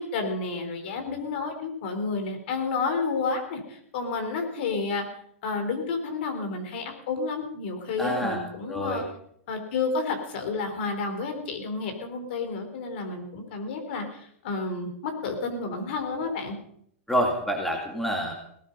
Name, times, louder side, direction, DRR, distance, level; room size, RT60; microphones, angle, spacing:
voice 1, 0.0-5.0 5.4-9.0 9.5-16.6, left 4 dB, 50° left, 6 dB, 4.0 m, -30 dB
voice 2, 8.0-8.4 8.7-9.0 17.1-18.3, equal, ahead, 1 dB, 2.1 m, -27 dB
18.5 x 12.5 x 5.5 m, 0.67 s
supercardioid pair, 160°, 7 cm